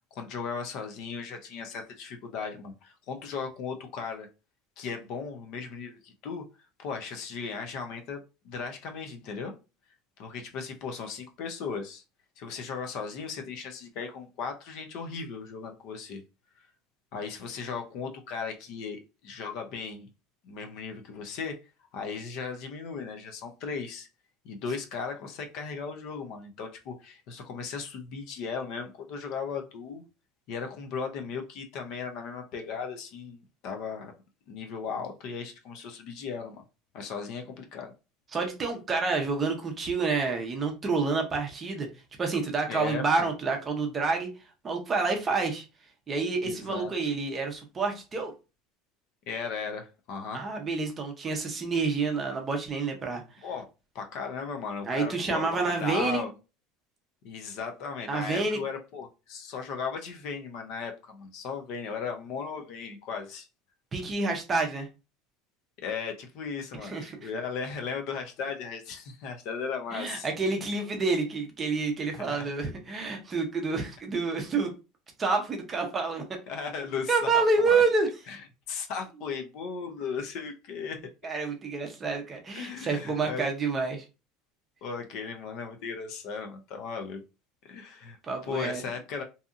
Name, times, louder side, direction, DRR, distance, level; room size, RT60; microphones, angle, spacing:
voice 1, 0.1-4.3 4.8-6.4 6.8-9.5 10.2-12.0 12.4-16.2 17.1-20.1 20.4-21.5 21.9-24.1 24.4-30.0 30.5-34.1 34.5-36.6 36.9-37.9 42.7-43.3 46.4-47.1 49.3-50.4 53.4-53.6 53.9-56.3 57.2-63.5 65.8-70.3 72.1-72.5 76.5-77.8 78.3-78.4 78.7-81.1 82.5-83.4 84.8-87.2 87.6-88.2 88.5-89.2, left 5 dB, 50° left, 0.5 m, -36 dB
voice 2, 38.3-41.9 42.2-44.3 44.6-45.6 46.1-48.3 50.3-53.2 54.9-56.3 58.1-58.6 63.9-64.9 66.8-67.3 69.9-74.7 75.2-76.2 77.1-78.1 81.2-84.0 88.3-88.8, right 4 dB, 20° right, 0.6 m, -28 dB
2.7 x 2.5 x 2.4 m
cardioid pair, 170°, 0 cm